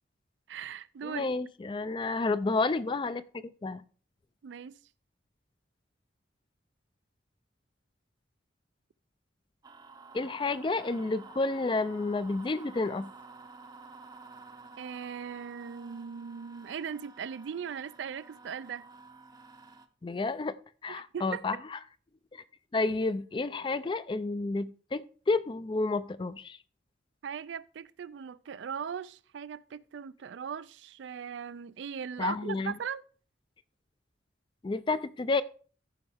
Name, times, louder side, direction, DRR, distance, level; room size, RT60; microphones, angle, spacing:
voice 1, 0.5-1.3 4.4-4.8 14.8-18.8 20.9-21.6 27.2-33.0, right 7 dB, 65° right, 0.4 m, -39 dB
voice 2, 1.0-3.8 10.1-13.1 20.0-20.5 20.8-21.8 22.3-22.4 22.7-26.6 32.2-32.8 34.6-35.4, left 3 dB, 25° left, 0.3 m, -30 dB
sound 1, 9.6-19.9, right 4 dB, 20° right, 0.6 m, -51 dB
14.0 x 5.3 x 3.4 m
head